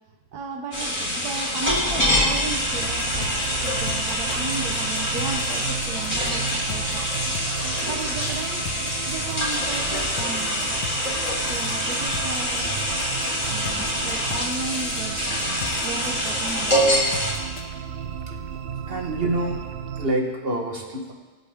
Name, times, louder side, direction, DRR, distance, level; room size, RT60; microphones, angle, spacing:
voice 1, 0.3-7.1 7.8-10.8 11.3-12.8 13.5-16.9, right 4 dB, 80° right, 3 dB, 1.5 m, -35 dB
sound 1, 0.7-17.3, equal, 25° left, 3.9 m, -25 dB
sound 2, 2.4-20.1, right 7 dB, 55° right, 0.6 m, -34 dB
sound 3, 3.0-17.6, left 6 dB, 60° left, 1.4 m, -37 dB
voice 2, 18.9-19.7 20.0-21.1, right 1 dB, 40° right, 2 dB, 1.5 m, -27 dB
24.0 x 8.3 x 3.6 m, 1.4 s
omnidirectional pair, 1.6 m